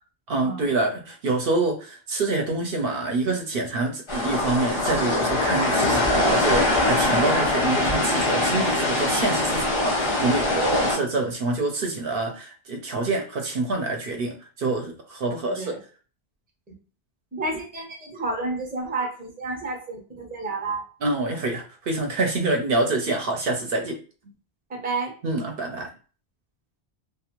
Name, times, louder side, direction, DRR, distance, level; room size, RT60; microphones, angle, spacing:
voice 1, 0.3-15.7 21.0-24.0 25.2-25.9, right 2 dB, 65° right, 3 dB, 0.7 m, -26 dB
sound 1, 4.1-11.0, left 2 dB, 35° left, 0.5 m, -23 dB
voice 2, 15.5-15.8 17.3-20.8 24.7-25.1, right 3 dB, 10° right, 0 dB, 0.5 m, -30 dB
2.4 x 2.4 x 2.9 m, 0.37 s
omnidirectional pair, 1.1 m